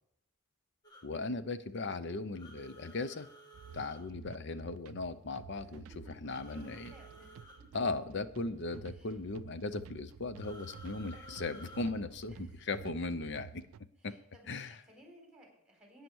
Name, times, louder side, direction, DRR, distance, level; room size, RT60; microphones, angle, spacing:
sound 1, 0.8-1.1 2.4-4.0 6.2-7.6 10.4-11.9, right 1 dB, 20° left, 2.7 m, -54 dB
voice 1, 1.0-3.3 3.7-6.9 7.7-13.6 14.0-14.1 14.5-14.8, left 3 dB, 60° left, 12 dB, 0.7 m, -38 dB
sound 2, 3.5-13.8, right 7 dB, 75° right, 0.3 m, -52 dB
voice 2, 6.3-7.3 8.9-9.1 14.0-16.0, equal, 5° right, 0 dB, 4.1 m, -59 dB
11.5 x 9.4 x 4.7 m, 0.72 s
head